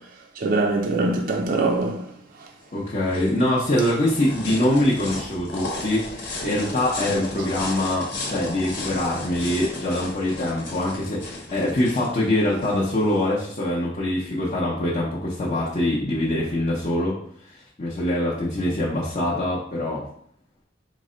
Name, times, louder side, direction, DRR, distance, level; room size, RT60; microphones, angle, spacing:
voice 1, 0.0-2.5, right 2 dB, 45° right, 0.4 m, -24 dB
sound 1, 2.6-13.5, left 2 dB, 60° left, 1.1 m, -35 dB
voice 2, 2.7-17.2 17.4-17.5 17.8-20.1, left 1 dB, 35° left, 0.7 m, -24 dB
4.7 x 2.1 x 3.7 m
head